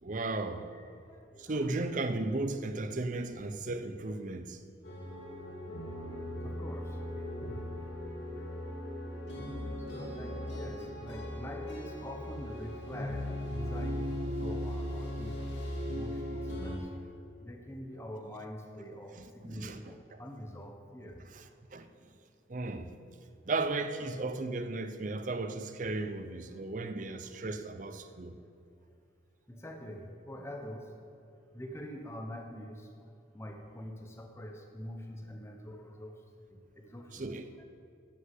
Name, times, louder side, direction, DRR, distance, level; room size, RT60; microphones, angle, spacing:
voice 1, 0.0-0.7 1.4-4.6 19.2-19.9 21.3-21.4 21.7-22.2 22.5-23.2 23.5-28.4 37.1-37.5, right 2 dB, 40° right, 0.6 m, -35 dB
voice 2, 0.7-1.7 6.4-7.7 9.8-15.4 15.9-16.9 17.4-21.2 26.6-26.7 29.5-32.9 33.3-36.2 36.5-37.6, equal, 15° left, 0.9 m, -45 dB
sound 1, 4.8-16.8, left 1 dB, 75° left, 2.4 m, -38 dB
11.0 x 6.4 x 7.6 m
head